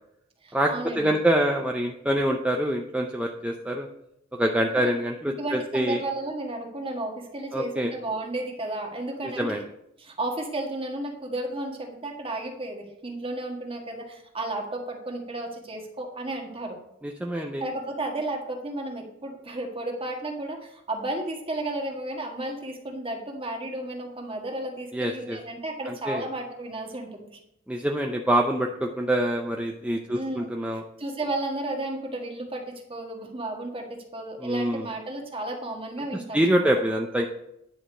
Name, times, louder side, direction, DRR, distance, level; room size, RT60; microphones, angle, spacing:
voice 1, 0.4-1.1 4.7-5.0 5.3-9.5 10.0-16.8 17.3-27.3 30.1-36.7, right 2 dB, 30° right, 2 dB, 1.7 m, -33 dB
voice 2, 0.9-3.9 4.3-6.0 7.5-7.9 9.2-9.6 17.0-17.6 24.9-25.4 25.9-26.2 27.7-30.8 34.4-34.9 36.3-37.3, right 1 dB, 5° right, 1 dB, 0.6 m, -25 dB
9.9 x 5.0 x 6.2 m, 0.80 s
head